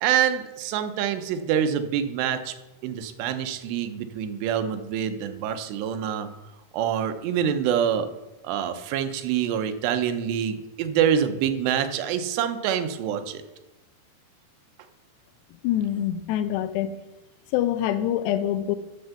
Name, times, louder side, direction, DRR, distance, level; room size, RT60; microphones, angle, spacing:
voice 1, 0.0-2.5 2.8-6.3 6.7-8.1 8.4-13.4, right 9 dB, 90° right, 8 dB, 2.9 m, -26 dB
voice 2, 15.6-16.9 17.5-18.8, left 11 dB, 90° left, 11 dB, 2.8 m, -25 dB
11.5 x 4.4 x 6.9 m, 1.0 s
omnidirectional pair, 4.7 m